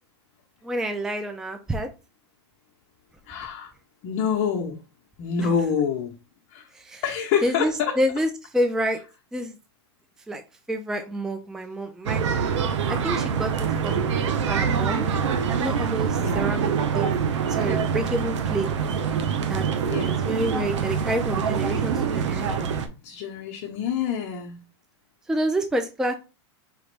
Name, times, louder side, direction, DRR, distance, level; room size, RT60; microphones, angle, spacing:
voice 1, 0.6-1.9 6.7-7.0 7.4-9.0 9.3-9.6 10.3-10.4 10.7-12.4 12.9-14.2 14.4-15.1 15.6-17.1 17.5-18.7 19.5-19.6 20.0-22.7 25.3-26.1, right 1 dB, 5° right, 6 dB, 0.4 m, -28 dB
voice 2, 3.3-3.7 4.0-4.8 5.2-6.2 6.5-6.7 7.0-8.0 16.1-16.5 19.8-20.2 23.0-24.6, left 7 dB, 50° left, -1 dB, 0.9 m, -27 dB
sound 1, 12.1-22.9, right 6 dB, 85° right, 0.8 m, -25 dB
4.9 x 3.0 x 3.2 m, 0.29 s
supercardioid pair, 135°, 15 cm